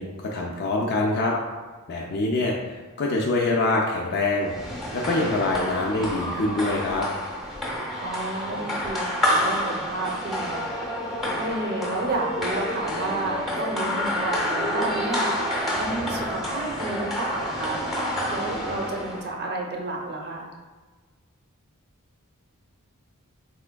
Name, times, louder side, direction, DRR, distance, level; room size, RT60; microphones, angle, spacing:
voice 1, 0.0-1.3 1.9-4.5 4.9-7.1, left 2 dB, 50° left, -2 dB, 0.4 m, -25 dB
sound 1, 4.4-19.3, equal, ahead, 0.7 m, -28 dB
voice 2, 8.0-10.9 11.4-20.5, right 2 dB, 45° right, 0 dB, 0.6 m, -31 dB
4.2 x 3.3 x 2.2 m, 1.4 s
head